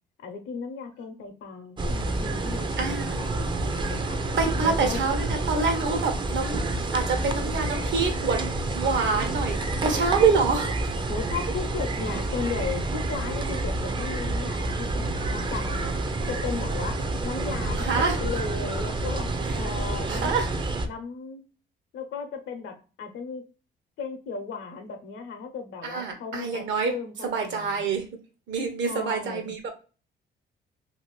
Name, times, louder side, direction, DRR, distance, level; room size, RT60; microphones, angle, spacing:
voice 1, 0.2-4.2 4.6-5.0 11.1-16.0 16.3-20.3 20.9-21.4 21.9-23.4 24.0-27.9 28.9-29.6, left 5 dB, 80° left, 6 dB, 0.7 m, -36 dB
sound 1, 1.8-20.9, right 2 dB, 25° right, 0.4 m, -29 dB
voice 2, 2.8-3.2 4.4-6.7 6.9-10.9 17.8-18.2 19.4-19.6 20.1-20.5 25.8-26.9 27.2-28.1 28.5-29.7, right 5 dB, 70° right, 5 dB, 0.9 m, -26 dB
2.6 x 2.5 x 3.0 m, 0.34 s
cardioid pair, 90°, 20 cm